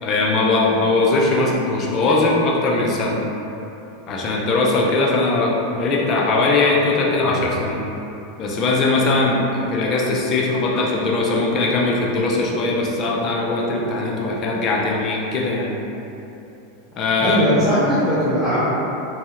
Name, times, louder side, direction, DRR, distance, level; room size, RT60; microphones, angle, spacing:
voice 1, 0.0-3.2 4.1-7.8 8.4-15.8 17.0-17.4, left 2 dB, 35° left, -2 dB, 0.5 m, -20 dB
voice 2, 17.2-18.6, equal, 15° right, -12 dB, 0.6 m, -19 dB
3.4 x 2.0 x 2.8 m, 2.9 s
figure-of-eight pair, 85°, 0 cm